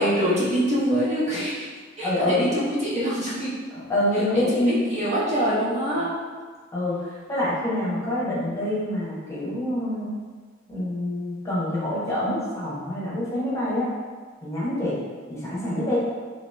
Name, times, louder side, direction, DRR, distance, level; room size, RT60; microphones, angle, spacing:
voice 1, 0.0-1.7 2.0-3.5 4.3-6.1, equal, 35° right, -7 dB, 0.7 m, -24 dB
voice 2, 2.0-2.5 3.7-4.8 6.7-10.1 10.7-13.9 14.4-15.0 15.3-16.0, left 1 dB, 15° left, -8 dB, 0.9 m, -26 dB
2.9 x 2.9 x 3.2 m, 1.5 s
head